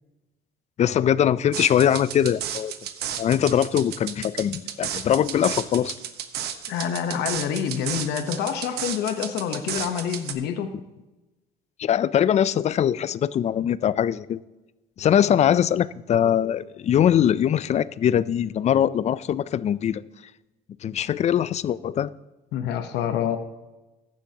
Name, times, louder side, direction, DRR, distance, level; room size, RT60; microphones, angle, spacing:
voice 1, 0.8-2.7 3.2-5.9 11.8-14.4 15.0-20.0 20.8-22.1, left 9 dB, 40° left, 19 dB, 0.4 m, -22 dB
sound 1, 1.5-10.3, right 10 dB, 70° right, 1.0 m, -33 dB
voice 2, 6.7-10.7 22.5-23.4, left 8 dB, 80° left, 8 dB, 1.0 m, -27 dB
15.0 x 11.5 x 2.9 m, 1.1 s
cardioid pair, 110°, 17 cm